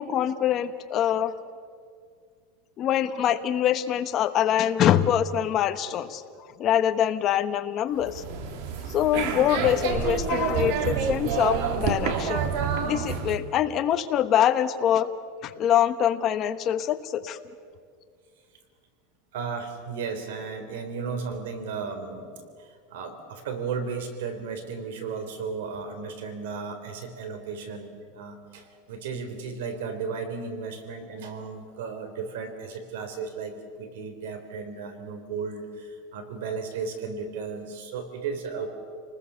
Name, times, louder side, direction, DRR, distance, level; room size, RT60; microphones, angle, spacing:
voice 1, 0.0-1.3 2.8-6.2 6.6-8.2 8.9-12.5 12.8-15.1 15.4-17.4, left 10 dB, 30° left, 9 dB, 1.1 m, -24 dB
sound 1, 8.0-13.4, right 6 dB, 60° right, 2.3 m, -28 dB
voice 2, 19.3-38.7, right 5 dB, 80° right, 8 dB, 3.7 m, -35 dB
28.5 x 20.0 x 7.1 m, 2.1 s
supercardioid pair, 160°, 0 cm